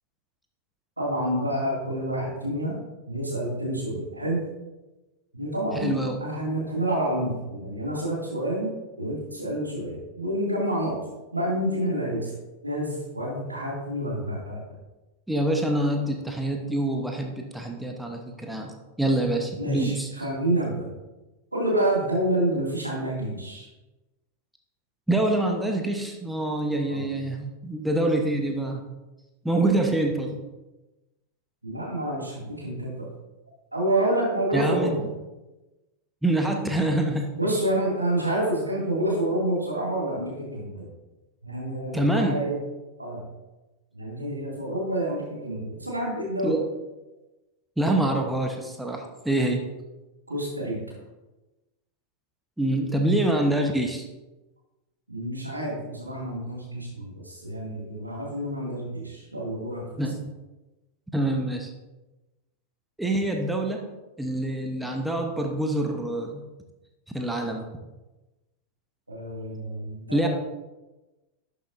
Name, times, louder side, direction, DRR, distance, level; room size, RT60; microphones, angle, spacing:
voice 1, 1.0-4.4 5.3-11.0 11.3-12.4 12.6-14.6 19.6-20.9 21.5-23.7 26.9-27.1 31.6-33.1 33.7-35.0 37.3-40.9 41.4-42.6 43.0-43.3 43.9-46.6 50.3-50.9 55.1-60.1 69.1-70.3, right 1 dB, 85° right, -3 dB, 2.3 m, -28 dB
voice 2, 5.7-6.2 15.3-20.1 25.1-28.8 29.4-30.4 34.5-35.0 36.2-37.4 41.9-42.4 46.4-46.7 47.8-49.6 52.6-54.1 60.0-60.3 61.1-61.7 63.0-63.9 64.2-66.4 67.1-67.7 70.1-70.3, right 1 dB, 5° right, 2 dB, 0.9 m, -25 dB
11.5 x 6.7 x 2.6 m, 1.1 s
figure-of-eight pair, 90°, 0 cm